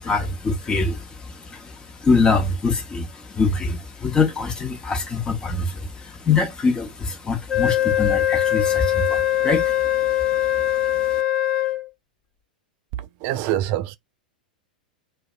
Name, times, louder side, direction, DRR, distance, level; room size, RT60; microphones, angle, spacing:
voice 1, 0.0-10.7, left 4 dB, 20° left, 0.9 m, -24 dB
Wind instrument woodwind instrument, 7.5-11.9, left 12 dB, 35° left, 1.2 m, -21 dB
voice 2, 12.9-14.0, right 13 dB, 45° right, 0.3 m, -25 dB
2.6 x 2.1 x 2.4 m
figure-of-eight pair, 95°, 5 cm